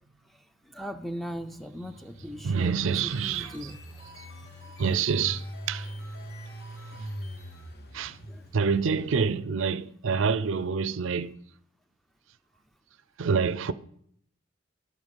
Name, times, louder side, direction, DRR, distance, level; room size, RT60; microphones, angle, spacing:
voice 1, 0.7-3.8 8.3-8.4, equal, ahead, 0.4 m, -39 dB
Engine, 1.5-9.5, equal, 50° left, 1.1 m, -43 dB
voice 2, 2.4-3.7 4.8-5.9 7.9-8.2 8.5-11.3 13.2-13.7, right 5 dB, 70° right, 0.5 m, -27 dB
sound 1, 2.8-7.8, left 2 dB, 80° left, 2.4 m, -53 dB
12.0 x 8.0 x 5.3 m
head